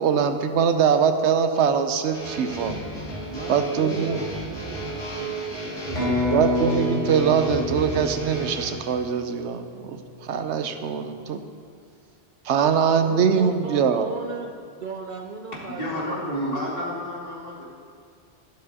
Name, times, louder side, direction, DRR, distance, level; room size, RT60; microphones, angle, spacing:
voice 1, 0.0-2.7 3.5-4.2 6.0-11.4 12.4-14.1, right 7 dB, 85° right, 8 dB, 1.0 m, -22 dB
sound 1, 2.1-8.7, right 2 dB, 80° left, 2.4 m, -33 dB
voice 2, 3.3-5.4 5.8-6.8 13.0-16.5, right 4 dB, 55° right, 4 dB, 0.6 m, -37 dB
sound 2, 5.9-9.7, left 3 dB, 30° left, 3.4 m, -29 dB
voice 3, 15.7-17.6, equal, 55° left, -7 dB, 2.6 m, -30 dB
12.5 x 11.5 x 2.8 m, 2.1 s
omnidirectional pair, 1.1 m